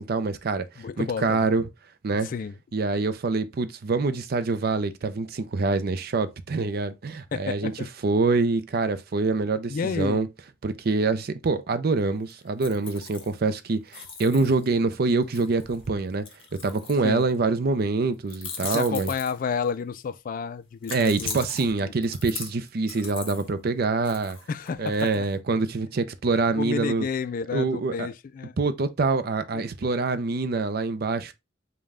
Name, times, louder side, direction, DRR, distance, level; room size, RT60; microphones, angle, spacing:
voice 1, 0.0-0.7 1.0-1.6 2.0-2.3 2.7-7.7 8.0-10.3 10.6-16.2 16.6-19.1 20.9-24.4 24.8-27.1 27.5-28.1 28.6-31.3, right 3 dB, 50° right, 0.5 m, -25 dB
voice 2, 0.8-1.5 2.2-2.6 7.3-7.9 9.7-10.3 17.0-17.2 18.6-21.4 21.8-21.9 24.5-25.3 26.6-28.6 29.5-29.6, left 5 dB, 45° left, 0.3 m, -31 dB
sound 1, 12.3-13.6 13.9-17.4 18.3-19.7 20.8-23.5 24.0-25.3, left 5 dB, 30° left, 1.0 m, -39 dB
5.3 x 2.2 x 3.5 m
head